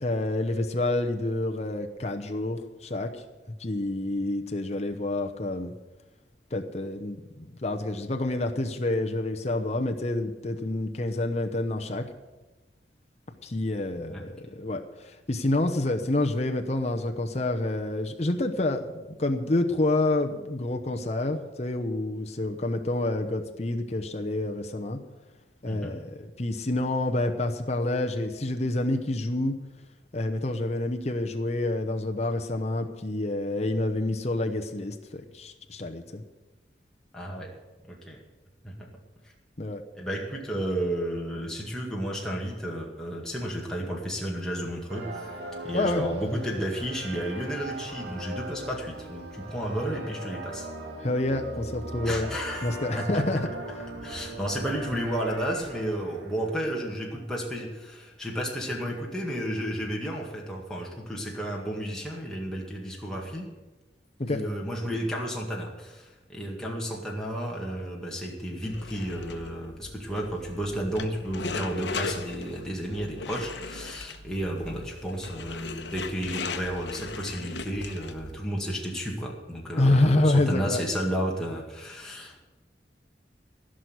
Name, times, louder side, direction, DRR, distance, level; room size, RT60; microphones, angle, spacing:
voice 1, 0.0-3.2 3.6-5.7 6.5-12.0 13.4-25.0 25.6-29.6 30.1-36.2 39.6-39.8 45.7-46.0 51.0-52.3 52.6-53.4 64.2-64.4 79.8-80.8, left 2 dB, 35° left, 4 dB, 0.9 m, -28 dB
voice 2, 37.1-37.5 37.9-38.2 38.6-38.9 39.9-50.7 52.0-52.7 52.9-53.2 54.0-63.5 64.3-82.4, equal, 5° left, -3 dB, 1.9 m, -32 dB
sound 1, 44.9-57.5, right 2 dB, 75° right, 2.5 m, -40 dB
sound 2, 68.6-78.4, left 4 dB, 85° left, 1.0 m, -38 dB
15.5 x 6.4 x 9.5 m, 1.1 s
head